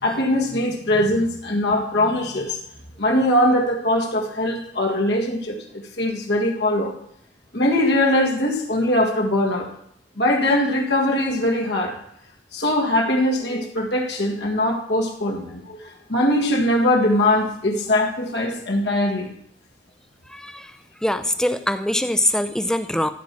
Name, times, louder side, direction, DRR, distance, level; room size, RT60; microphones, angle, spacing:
voice 1, 0.0-2.6 3.0-6.9 7.5-9.7 10.2-12.0 12.5-19.3, left 1 dB, 70° left, 0 dB, 1.7 m, -21 dB
voice 2, 20.3-20.7 21.0-23.1, left 1 dB, 5° left, 10 dB, 0.5 m, -23 dB
13.5 x 4.6 x 6.1 m, 0.69 s
head